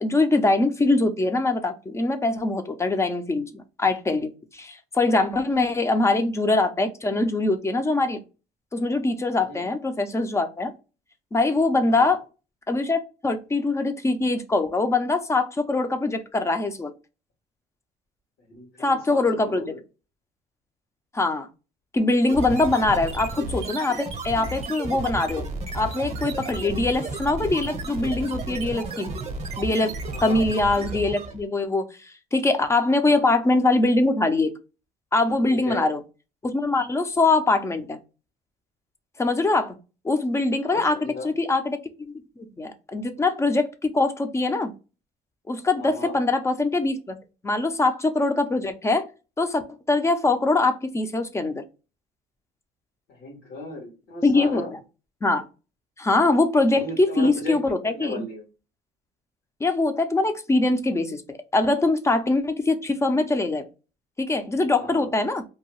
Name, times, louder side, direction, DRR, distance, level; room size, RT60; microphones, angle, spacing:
voice 1, 0.0-8.2 8.7-10.7 11.3-12.2 12.7-16.9 18.8-19.6 21.1-21.5 21.9-25.5 25.7-29.1 29.6-29.9 30.2-34.5 35.1-36.0 36.4-38.0 39.2-39.8 40.0-44.7 45.5-47.2 47.4-49.1 49.4-49.6 49.9-51.6 54.2-54.8 55.2-55.4 56.0-58.2 59.6-63.6 64.2-65.5, left 2 dB, 15° left, 8 dB, 0.4 m, -23 dB
voice 2, 18.5-19.8 28.8-29.0 30.1-30.4 33.1-33.2 35.5-35.9 40.6-41.3 45.8-46.1 53.2-54.7 56.8-57.6 57.8-58.4 64.7-65.0, left 1 dB, 80° left, -3 dB, 1.3 m, -36 dB
sound 1, 22.3-31.5, right 3 dB, 40° right, 0.7 m, -33 dB
2.7 x 2.2 x 3.0 m, 0.32 s
cardioid pair, 110°, 17 cm